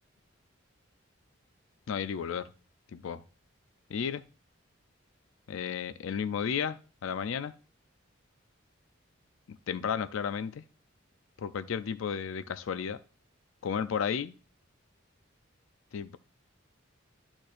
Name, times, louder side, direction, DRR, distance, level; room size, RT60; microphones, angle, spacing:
voice 1, 1.9-2.5 2.9-3.2 3.9-4.2 5.5-7.5 9.5-10.6 11.4-13.0 13.6-14.3 15.9-16.2, left 7 dB, 80° left, 0.4 m, -33 dB
12.0 x 4.4 x 2.5 m
head